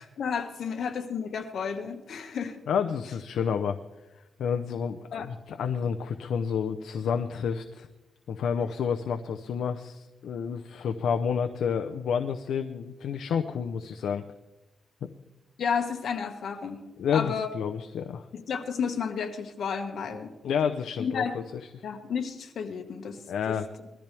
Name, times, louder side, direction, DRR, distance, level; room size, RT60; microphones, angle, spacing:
voice 1, 0.0-2.6 5.1-5.3 15.6-16.8 17.1-17.5 18.3-20.3 21.0-21.3 21.8-23.2 23.5-23.6, left 6 dB, 65° left, 6 dB, 1.7 m, -32 dB
voice 2, 2.7-3.8 4.4-7.9 8.3-14.2 17.0-18.3 20.4-21.8 23.3-23.7, left 7 dB, 85° left, 6 dB, 0.8 m, -30 dB
21.5 x 13.5 x 3.5 m, 1.1 s
wide cardioid pair, 130°, 0 cm